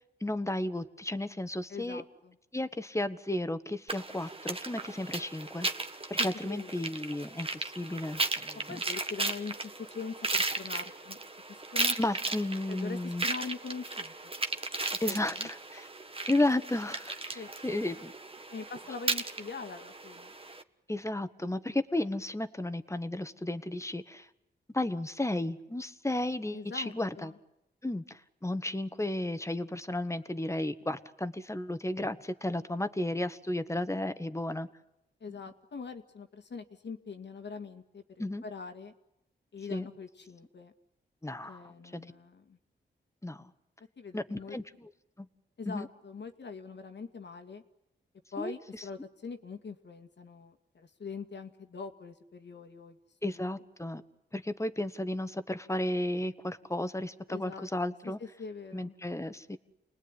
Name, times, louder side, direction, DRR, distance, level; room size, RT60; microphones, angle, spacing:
voice 1, 0.2-2.0 2.5-5.7 6.1-8.8 12.0-13.2 15.0-15.9 16.3-18.1 20.9-24.3 24.7-27.3 27.8-34.7 38.2-38.4 39.7-39.9 41.2-42.0 43.2-43.5 44.1-44.9 45.2-45.3 45.7-45.9 48.4-48.8 53.2-54.0 54.3-58.2 58.7-59.6, left 1 dB, 15° left, 11 dB, 1.6 m, -33 dB
voice 2, 1.7-2.4 6.2-7.0 8.7-11.2 11.7-12.0 12.7-14.3 15.1-15.5 17.3-17.5 18.5-20.3 26.5-27.4 35.2-38.0 38.4-38.9 39.5-40.7 41.5-42.6 44.0-44.6 45.6-47.6 48.3-53.0 53.3-53.6 57.3-57.7 58.0-59.0, left 5 dB, 65° left, 7 dB, 2.2 m, -43 dB
sound 1, 3.9-20.6, right 2 dB, 30° right, 1.6 m, -36 dB
29.5 x 20.0 x 10.0 m, 0.88 s
cardioid pair, 65°, 19 cm